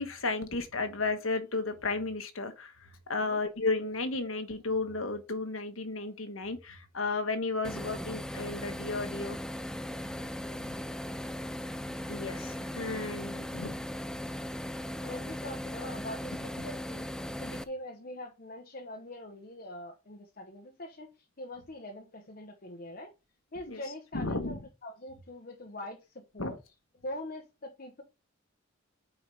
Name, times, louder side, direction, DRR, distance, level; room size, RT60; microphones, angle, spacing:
voice 1, 0.0-2.7 3.1-9.4 10.6-10.7 12.1-13.8 23.7-23.8 24.1-24.6 26.4-26.5, left 3 dB, 90° left, 1.4 m, -33 dB
sound 1, 7.6-17.6, left 1 dB, 5° left, 0.4 m, -38 dB
voice 2, 15.0-17.1 17.4-23.1 23.5-26.6 27.0-28.0, left 1 dB, 45° left, 1.0 m, -43 dB
8.8 x 4.7 x 3.5 m
head